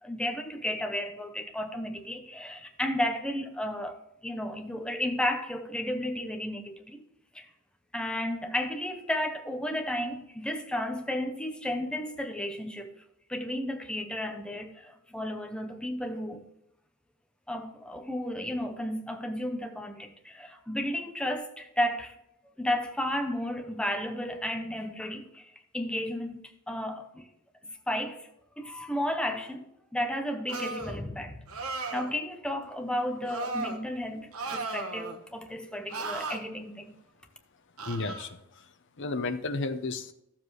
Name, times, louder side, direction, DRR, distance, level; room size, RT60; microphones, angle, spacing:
voice 1, 0.0-7.0 7.3-7.5 7.9-12.9 13.3-16.4 17.5-22.2 22.6-27.3 27.9-28.3 28.6-29.7 29.9-31.4 31.9-36.9, left 1 dB, 5° left, 0.7 m, -33 dB
sound 1, 30.5-31.0 31.5-32.1 33.3-33.8 34.3-35.2 35.9-36.4 37.8-38.3, right 3 dB, 70° right, 1.2 m, -35 dB
voice 2, 37.8-38.6 39.0-40.1, left 3 dB, 55° left, 0.8 m, -33 dB
13.0 x 7.3 x 3.2 m
head